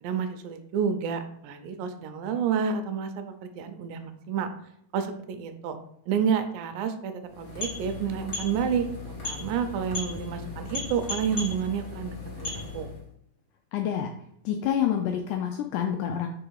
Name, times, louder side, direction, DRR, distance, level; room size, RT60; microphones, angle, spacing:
voice 1, 0.0-4.5 4.9-5.8 6.1-12.9, right 7 dB, 80° right, 8 dB, 2.3 m, -30 dB
sound 1, 7.2-13.0, left 3 dB, 55° left, 0.9 m, -36 dB
voice 2, 13.7-14.1 14.4-16.3, left 9 dB, 85° left, 4 dB, 1.8 m, -27 dB
4.9 x 4.3 x 4.7 m, 0.73 s
omnidirectional pair, 4.1 m